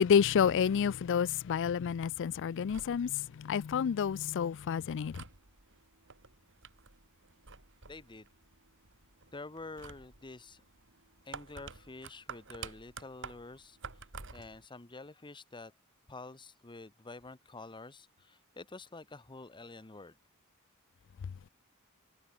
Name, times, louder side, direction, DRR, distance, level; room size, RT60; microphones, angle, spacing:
voice 1, 0.0-5.2, left 7 dB, 60° left, 0.4 m, -29 dB
sound 1, 2.5-14.6, right 5 dB, 60° right, 4.3 m, -51 dB
voice 2, 7.9-8.3 9.3-10.6 11.2-14.0 14.3-15.7 16.1-20.1, left 3 dB, 20° left, 1.0 m, -48 dB
head